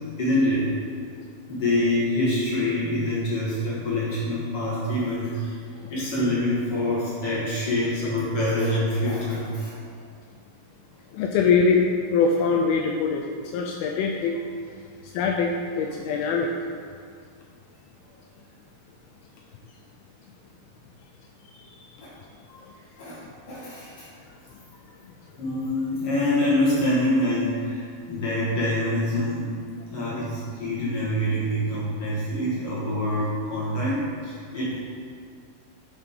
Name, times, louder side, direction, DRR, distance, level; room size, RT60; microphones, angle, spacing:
voice 1, 0.2-0.7 1.5-9.7 22.0-22.1 23.0-23.2 23.5-24.1 25.4-29.5 29.9-34.8, left 1 dB, 55° left, -7 dB, 1.7 m, -25 dB
voice 2, 11.1-11.8 12.1-14.4 15.1-16.5 21.7-21.8 22.5-22.7, left 5 dB, 85° left, 1 dB, 2.1 m, -23 dB
10.5 x 5.6 x 3.6 m, 2.1 s
omnidirectional pair, 4.8 m